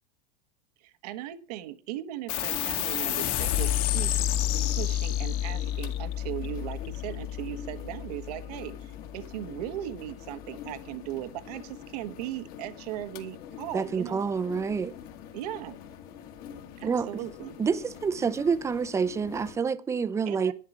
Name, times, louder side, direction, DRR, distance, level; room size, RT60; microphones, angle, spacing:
voice 1, 0.8-4.1 4.7-14.2 15.3-15.8 16.8-17.6 20.3-20.5, right 13 dB, 70° right, 1.3 m, -38 dB
sound 1, 2.3-9.2, left 12 dB, 60° left, 3.0 m, -30 dB
sound 2, 2.3-19.6, left 9 dB, 45° left, 2.0 m, -45 dB
voice 2, 13.7-14.9 16.8-17.1 17.6-20.5, right 5 dB, 15° right, 0.7 m, -28 dB
11.5 x 10.5 x 6.0 m
supercardioid pair, 150°, 21 cm